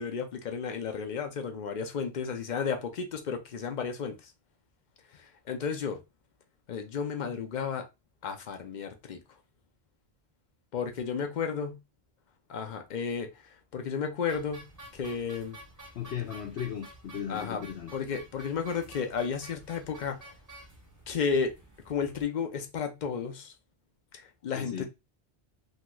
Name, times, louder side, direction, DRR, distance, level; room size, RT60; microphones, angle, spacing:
voice 1, 0.0-4.3 5.1-6.0 6.7-7.9 8.2-9.2 10.7-11.8 12.5-13.3 13.7-14.7 14.9-15.6 17.3-17.6 17.9-20.2 21.1-21.5 21.9-23.5 24.1-24.8, left 6 dB, 55° left, 0.6 m, -33 dB
sound 1, 14.3-22.2, right 1 dB, 20° right, 0.7 m, -50 dB
voice 2, 15.9-17.9 24.6-24.9, left 9 dB, 85° left, 0.9 m, -36 dB
3.1 x 2.9 x 2.2 m
omnidirectional pair, 1.1 m